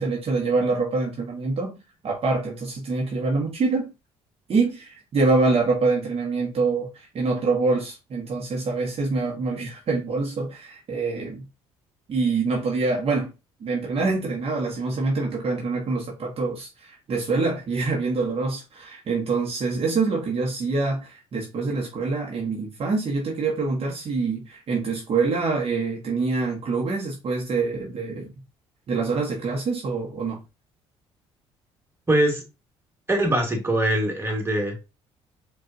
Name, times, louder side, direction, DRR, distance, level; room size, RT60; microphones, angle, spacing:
voice 1, 0.0-3.9 4.5-11.4 12.1-13.3 13.6-28.3 28.9-30.4, right 3 dB, 50° right, 1.2 m, -25 dB
voice 2, 32.1-32.4 33.1-34.9, right 1 dB, 20° right, 1.7 m, -22 dB
5.1 x 2.6 x 2.6 m
supercardioid pair, 65°, 13 cm